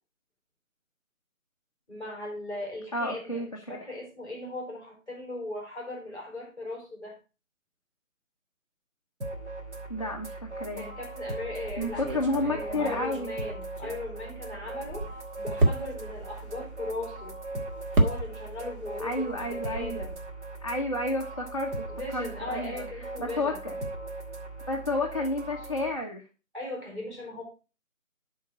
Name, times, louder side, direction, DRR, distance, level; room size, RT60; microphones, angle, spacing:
voice 1, 1.9-7.2 10.8-15.1 15.4-17.4 18.0-20.1 22.0-23.6 26.5-27.4, left 2 dB, 5° right, -2 dB, 3.9 m, -38 dB
voice 2, 2.9-3.8 9.9-10.9 11.8-13.3 19.0-20.1 20.6-23.7 24.7-26.2, left 2 dB, 25° left, -1 dB, 0.6 m, -31 dB
sound 1, 9.2-25.9, right 2 dB, 55° right, 2.5 m, -39 dB
sound 2, 11.6-14.3 14.7-18.7 19.0-20.3, right 2 dB, 40° right, 1.5 m, -31 dB
11.0 x 4.7 x 4.6 m, 0.32 s
figure-of-eight pair, 165°, 41 cm